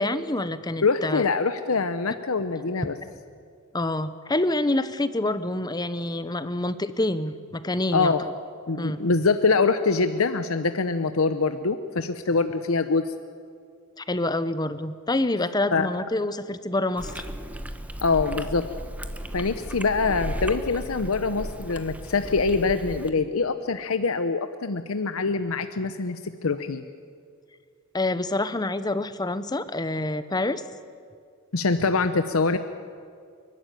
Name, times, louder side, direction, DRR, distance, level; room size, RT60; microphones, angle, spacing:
voice 1, 0.0-1.2 3.0-3.1 3.7-8.3 8.8-9.0 14.0-17.2 27.9-30.6, left 2 dB, 20° left, 13 dB, 0.8 m, -27 dB
voice 2, 0.8-2.9 7.9-8.2 8.7-13.0 15.7-15.9 18.0-18.6 19.3-26.8 31.5-32.6, left 4 dB, 75° left, 10 dB, 0.8 m, -24 dB
Chewing mastication, 17.0-23.1, equal, 5° right, 1.0 m, -35 dB
29.0 x 12.0 x 9.2 m, 2.2 s
head